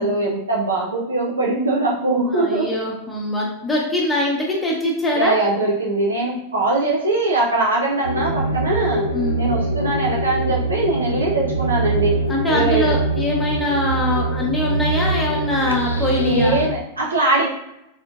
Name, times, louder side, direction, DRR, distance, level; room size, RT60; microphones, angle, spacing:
voice 1, 0.0-2.8 5.2-9.1 9.4-12.2 12.5-12.9 16.2-17.5, right 2 dB, 75° right, -4 dB, 0.6 m, -21 dB
voice 2, 2.3-5.4 9.1-9.4 12.3-16.6, left 1 dB, 10° left, -3 dB, 0.8 m, -23 dB
sound 1, 8.0-16.7, right 2 dB, 85° left, 0.3 m, -23 dB
3.6 x 3.5 x 2.4 m, 0.87 s
figure-of-eight pair, 90°, 0 cm